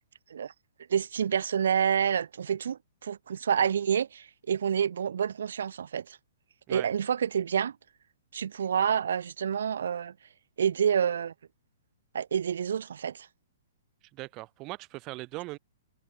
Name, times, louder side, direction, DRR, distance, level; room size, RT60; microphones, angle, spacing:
voice 1, 0.9-6.2 6.7-7.8 8.3-10.1 10.6-11.3 12.1-13.3, right 8 dB, 80° right, 2.1 m, -28 dB
voice 2, 14.1-15.6, right 22 dB, 25° right, 5.4 m, -39 dB
hypercardioid pair, 170°, 0 cm